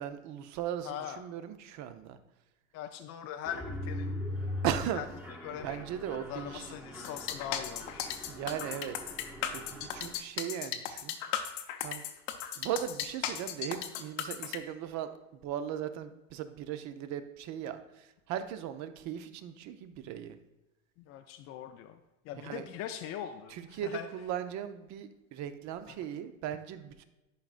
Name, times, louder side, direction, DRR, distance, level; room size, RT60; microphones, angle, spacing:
voice 1, 0.0-2.2 4.6-5.1 5.5-6.7 8.3-8.9 9.5-11.1 11.8-12.0 12.6-15.1 15.4-17.8 18.3-20.4 22.4-22.6 23.6-27.0, right 10 dB, 45° right, 10 dB, 0.7 m, -37 dB
voice 2, 0.8-1.2 2.7-4.1 4.9-5.8 6.3-8.2 21.1-22.0 22.3-24.1 25.9-26.0, left 10 dB, 40° left, 5 dB, 0.5 m, -41 dB
Mechanisms, 3.5-10.2, left 1 dB, 5° right, 1.0 m, -41 dB
sound 1, 7.0-14.6, left 10 dB, 65° left, 0.9 m, -36 dB
11.5 x 5.0 x 2.5 m, 1.0 s
hypercardioid pair, 105°, 40 cm